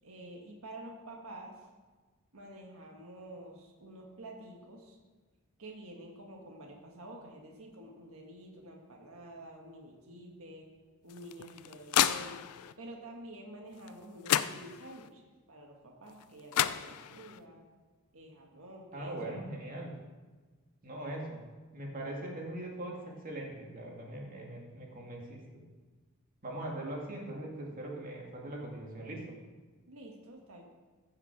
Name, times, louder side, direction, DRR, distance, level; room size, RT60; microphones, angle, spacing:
voice 1, 0.0-1.5 2.3-5.0 5.6-10.7 11.0-12.4 12.8-15.2 15.5-17.6 18.1-19.3 29.8-30.6, right 1 dB, 70° right, 0 dB, 1.6 m, -49 dB
sound 1, 11.1-12.7 13.9-14.0 14.2-15.1 16.2-16.3 16.5-17.4, left 11 dB, 85° left, 0.4 m, -31 dB
voice 2, 18.9-19.9 20.8-21.4 21.7-25.4 26.4-29.2, right 1 dB, 40° right, -1 dB, 2.1 m, -41 dB
14.5 x 5.8 x 4.7 m, 1.3 s
head